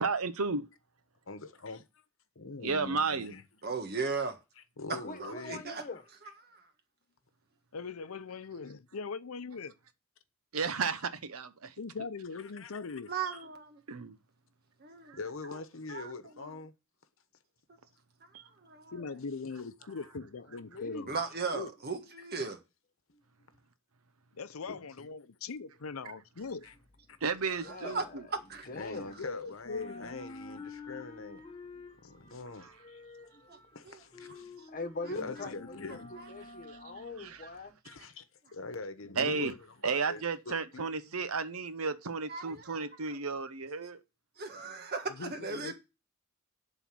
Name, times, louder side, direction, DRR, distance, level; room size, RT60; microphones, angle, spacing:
voice 1, 0.0-0.6 2.6-3.3 10.5-11.7 13.9-14.2 15.1-15.2 18.3-18.4 27.2-28.2 36.7-36.8 37.2-37.5 39.2-39.5 39.8-44.0, right 4 dB, 90° right, 0.9 m, -33 dB
voice 2, 1.3-2.0 2.3-3.4 4.1-4.2 4.8-5.6 12.3-13.0 15.1-16.7 22.2-22.3 24.7-25.1 26.6-26.7 27.1-27.2 28.7-31.4 32.0-33.0 33.7-34.6 35.1-36.1 36.4-36.5 37.8-38.2 38.5-39.6 39.8-41.2, left 3 dB, 65° left, 1.1 m, -44 dB
voice 3, 3.6-4.4 4.9-5.8 6.5-6.6 13.1-13.8 14.8-15.2 15.9-16.1 18.6-18.9 21.1-22.6 27.7-28.0 28.5-28.7 33.5-33.6 33.9-34.0 42.3-42.9 44.4-45.7, right 4 dB, 50° right, 1.6 m, -37 dB
voice 4, 5.0-6.0 20.7-21.1 23.1-23.2 27.6-28.3 28.7-29.2 33.3-33.6 34.7-37.7, left 2 dB, 40° left, 1.3 m, -42 dB
voice 5, 7.7-9.7 11.8-13.1 18.9-21.2 21.5-21.7 24.3-26.7 29.2-30.1 35.2-36.1 39.0-39.5 45.0-45.7, left 4 dB, 85° left, 0.7 m, -41 dB
sound 1, 26.4-29.3 29.6-37.7, left 3 dB, 25° left, 1.1 m, -50 dB
11.0 x 4.0 x 7.6 m
head